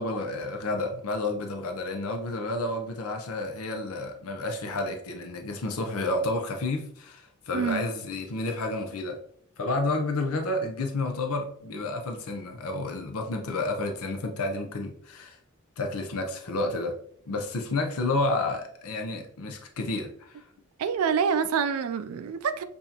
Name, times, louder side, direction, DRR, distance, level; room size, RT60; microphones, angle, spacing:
voice 1, 0.0-9.2 9.6-15.4 15.8-16.9 17.3-20.4, left 2 dB, 85° left, 0.6 m, -30 dB
voice 2, 7.5-7.9 20.8-22.6, right 6 dB, 80° right, 0.4 m, -26 dB
7.0 x 2.6 x 2.8 m
head